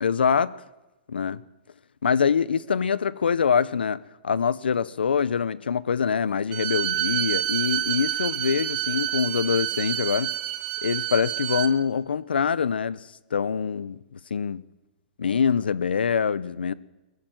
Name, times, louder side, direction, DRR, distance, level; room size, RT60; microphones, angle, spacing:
voice 1, 0.0-0.5 1.1-1.4 2.0-10.3 10.8-13.0 13.3-14.6 15.2-16.7, left 6 dB, 90° left, 0.8 m, -24 dB
Bowed string instrument, 6.5-11.7, right 16 dB, 45° right, 1.5 m, -28 dB
21.0 x 14.5 x 9.1 m
hypercardioid pair, 135°, 5 cm